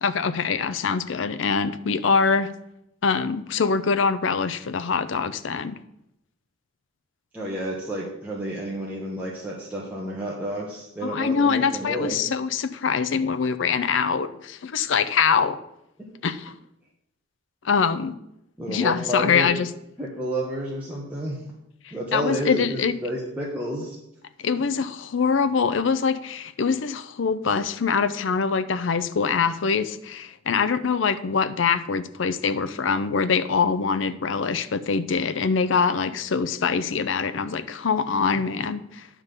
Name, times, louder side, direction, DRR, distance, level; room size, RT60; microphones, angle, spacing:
voice 1, 0.0-2.5 3.0-5.8 11.0-15.6 16.2-16.6 17.6-18.2 18.7-19.7 21.8-22.9 24.4-39.1, left 5 dB, 75° left, 12 dB, 0.5 m, -24 dB
voice 2, 7.3-12.2 18.6-19.5 20.0-21.4 21.9-24.0, equal, 10° right, -6 dB, 1.2 m, -30 dB
9.8 x 3.7 x 6.6 m, 0.81 s
head